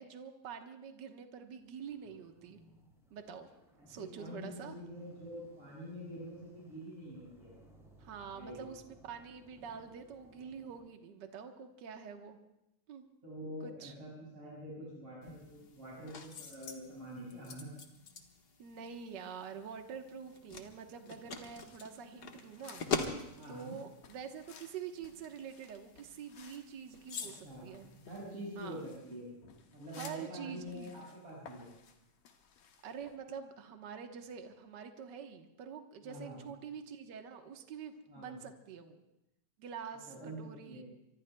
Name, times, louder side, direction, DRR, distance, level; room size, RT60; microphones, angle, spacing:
voice 1, 0.0-2.6 3.1-3.5 3.9-4.8 8.0-12.4 12.9-13.0 13.6-13.9 18.6-22.8 23.5-27.9 28.6-28.8 29.9-30.9 32.8-39.0 39.6-40.8, right 7 dB, 80° right, 5 dB, 0.9 m, -46 dB
sound 1, 1.6-10.8, equal, ahead, 6.4 m, -63 dB
voice 2, 3.8-7.5 8.3-8.7 13.2-17.7 23.3-23.8 27.2-29.4 29.7-31.7 36.0-36.4 38.1-38.4 40.1-40.8, equal, 45° right, -7 dB, 6.9 m, -46 dB
sound 2, 15.2-29.0, left 5 dB, 55° left, 1.1 m, -45 dB
sound 3, 21.1-33.2, left 6 dB, 75° left, 3.1 m, -58 dB
25.0 x 24.0 x 2.3 m, 0.88 s
omnidirectional pair, 3.9 m